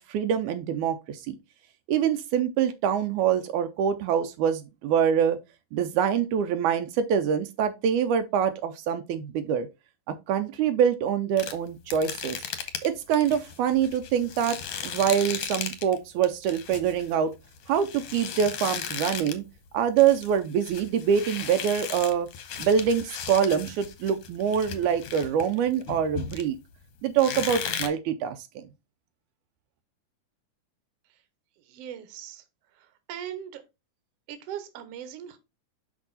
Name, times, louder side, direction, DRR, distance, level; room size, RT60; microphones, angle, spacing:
voice 1, 0.0-1.4 1.9-5.4 5.7-9.7 10.1-12.4 12.8-14.6 14.8-17.3 17.7-19.4 19.7-22.3 22.6-26.6 27.0-28.6, right 8 dB, 80° right, 2.0 m, -25 dB
sound 1, 11.4-16.0 16.2-19.5 19.7-26.7 27.2-27.9, left 8 dB, 65° left, 1.7 m, -36 dB
voice 2, 31.6-32.5 32.7-33.6 34.3-35.4, right 10 dB, 65° right, 1.8 m, -40 dB
6.1 x 5.2 x 4.0 m
omnidirectional pair, 3.5 m